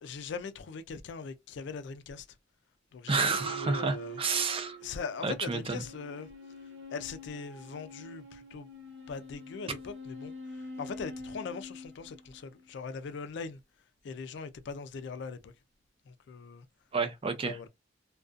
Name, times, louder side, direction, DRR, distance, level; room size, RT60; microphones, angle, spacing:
voice 1, 0.0-2.3 2.9-4.2 4.8-6.3 6.9-8.7 9.1-13.6 14.0-15.5 16.1-16.7 17.4-17.7, left 5 dB, 65° left, 0.4 m, -41 dB
sound 1, 3.0-12.7, right 1 dB, 70° right, 0.9 m, -45 dB
voice 2, 3.1-4.8 5.2-5.8 16.9-17.7, right 4 dB, 30° right, 0.4 m, -30 dB
2.4 x 2.2 x 2.5 m
head